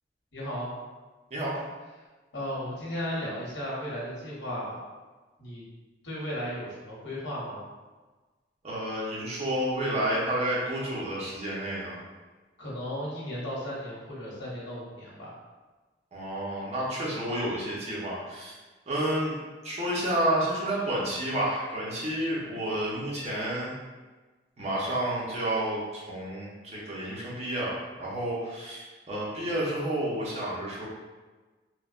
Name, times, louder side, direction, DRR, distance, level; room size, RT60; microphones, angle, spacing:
voice 1, 0.3-0.7 2.3-4.8 5.4-5.6 6.0-7.6 12.6-15.3, equal, 80° left, -6 dB, 1.0 m, -35 dB
voice 2, 8.6-12.0 16.1-18.5 18.9-19.3 19.6-23.7 24.6-30.9, right 1 dB, 35° right, -6 dB, 0.7 m, -30 dB
3.1 x 2.1 x 2.4 m, 1.3 s
head